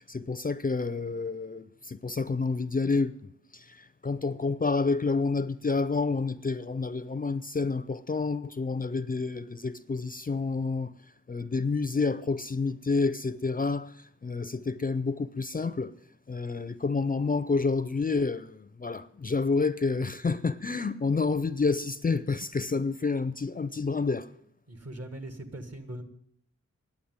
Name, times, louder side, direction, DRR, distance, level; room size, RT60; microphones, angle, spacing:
voice 1, 0.0-3.1 3.5-10.9 11.3-15.9 16.3-24.3, left 4 dB, 30° left, 0.4 m, -29 dB
voice 2, 24.7-26.0, right 1 dB, 55° right, 1.8 m, -40 dB
10.0 x 8.6 x 9.5 m
wide cardioid pair, 105°, 30 cm